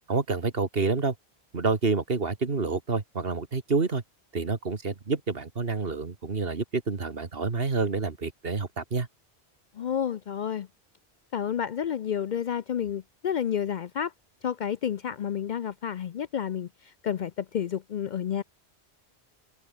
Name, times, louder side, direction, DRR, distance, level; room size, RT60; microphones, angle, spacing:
voice 1, 0.1-1.1 1.5-4.0 4.3-9.1, right 4 dB, 65° right, 2.1 m, -28 dB
voice 2, 9.7-10.7 11.3-14.1 14.4-18.4, left 8 dB, 55° left, 0.6 m, -30 dB
open air
omnidirectional pair, 1.1 m